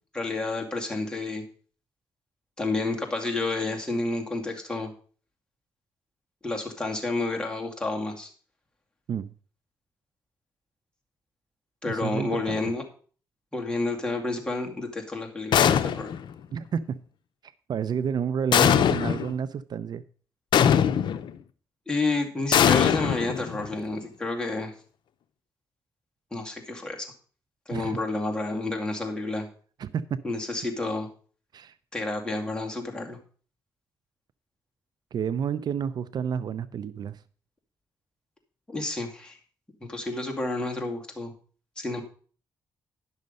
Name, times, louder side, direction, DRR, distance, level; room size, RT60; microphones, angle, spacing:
voice 1, 0.1-1.4 2.6-4.9 6.4-8.3 11.8-12.8 13.5-16.1 21.9-24.7 26.3-27.1 27.7-29.5 30.2-31.1 31.9-33.2 38.7-39.4 39.9-41.3 41.8-42.0, left 2 dB, 10° left, 2.3 m, -30 dB
voice 2, 11.8-12.6 16.5-17.0 17.4-20.0 27.7-28.0 29.8-30.2 31.5-31.7 35.1-37.2, right 7 dB, 60° right, 0.5 m, -30 dB
sound 1, 15.5-16.3 18.5-19.3 20.5-21.3 22.5-23.7, left 9 dB, 75° left, 0.6 m, -21 dB
10.5 x 6.4 x 5.3 m
cardioid pair, 90°, 8 cm